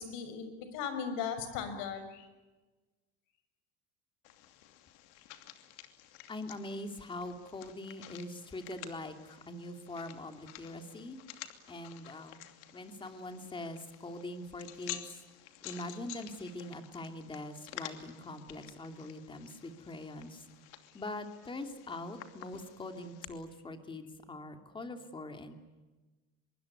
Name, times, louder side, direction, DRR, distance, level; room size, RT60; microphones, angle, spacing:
voice 1, 0.0-2.3, left 7 dB, 65° left, 9 dB, 6.3 m, -37 dB
sound 1, 4.2-23.2, left 13 dB, 80° left, 2.8 m, -51 dB
voice 2, 6.3-11.2 11.7-12.4 12.7-15.2 15.6-20.4 20.9-25.5, left 2 dB, 15° left, 6 dB, 2.7 m, -43 dB
25.0 x 23.0 x 9.7 m, 1.2 s
cardioid pair, 150°, 34 cm